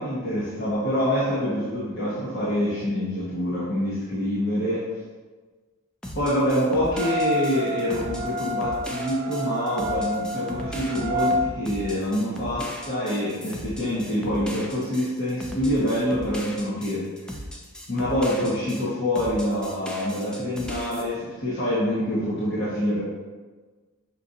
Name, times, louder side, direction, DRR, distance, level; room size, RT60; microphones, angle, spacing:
voice 1, 0.0-4.9 6.1-17.0 17.9-23.0, equal, 55° left, -10 dB, 1.1 m, -26 dB
sound 1, 6.0-18.9 19.1-21.0, equal, 5° left, 0.3 m, -38 dB
sound 2, 6.9-11.4, equal, 65° right, 0.8 m, -29 dB
6.3 x 2.7 x 2.6 m, 1.4 s
head